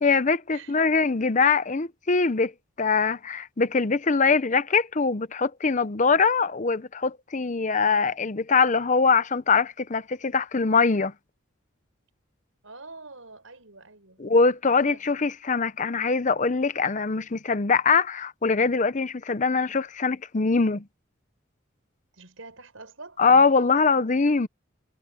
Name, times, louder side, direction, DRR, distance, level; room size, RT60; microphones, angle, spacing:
voice 1, 0.0-2.5 2.8-11.1 14.2-20.8 23.2-24.5, left 4 dB, 40° left, 0.7 m, -22 dB
voice 2, 12.6-14.2 14.6-15.0 22.1-23.7, right 3 dB, 85° right, 5.9 m, -46 dB
head